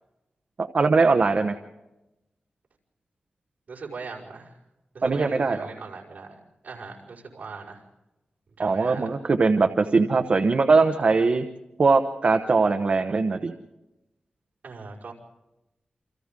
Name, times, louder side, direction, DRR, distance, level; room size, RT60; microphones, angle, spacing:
voice 1, 0.6-1.5 5.0-5.7 8.6-11.5 11.8-13.5, right 4 dB, 45° right, 6 dB, 1.0 m, -21 dB
voice 2, 3.7-4.6 4.9-7.8 8.6-9.1 14.6-15.1, right 4 dB, 65° right, -3 dB, 5.3 m, -40 dB
28.5 x 26.0 x 3.8 m, 0.96 s
wide cardioid pair, 150°, 3 cm